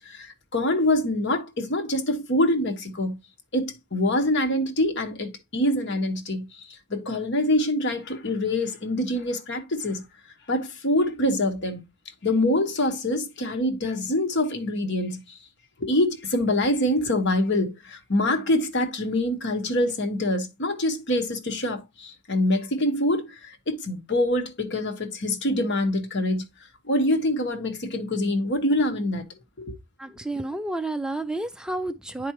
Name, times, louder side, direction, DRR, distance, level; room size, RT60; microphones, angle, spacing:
voice 1, 0.0-3.2 3.5-6.5 6.9-10.0 10.5-11.8 12.2-15.2 15.8-26.4 26.9-29.2 29.6-29.8, left 1 dB, 55° left, 1.2 m, -25 dB
voice 2, 30.0-32.3, right 2 dB, 5° right, 0.3 m, -30 dB
9.5 x 4.7 x 2.9 m
head